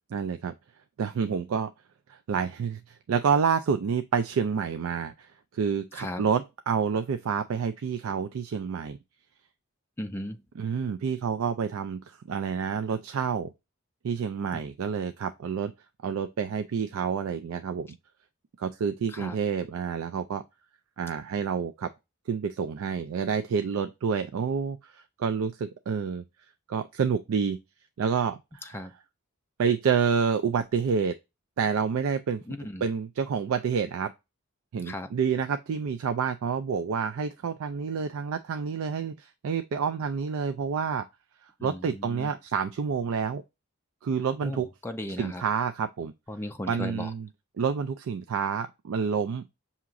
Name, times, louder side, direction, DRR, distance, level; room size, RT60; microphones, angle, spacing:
voice 1, 0.1-0.5 1.0-1.7 2.1-5.3 5.5-9.0 10.6-12.0 12.3-13.5 14.0-15.7 16.0-17.9 18.6-20.4 21.0-21.9 22.3-26.2 26.7-27.6 28.0-28.6 29.6-31.1 31.6-32.4 32.8-34.1 34.7-41.0 41.6-43.4 44.0-44.7 45.2-46.1 46.7-47.3 47.6-49.4, right 6 dB, 75° right, 0.4 m, -28 dB
voice 2, 5.9-6.2 10.0-10.4 14.5-14.6 19.1-19.4 28.6-28.9 32.5-32.9 34.8-35.1 41.6-42.3 44.4-45.4 46.3-47.1, left 1 dB, 10° left, 0.3 m, -36 dB
5.8 x 2.8 x 2.4 m
head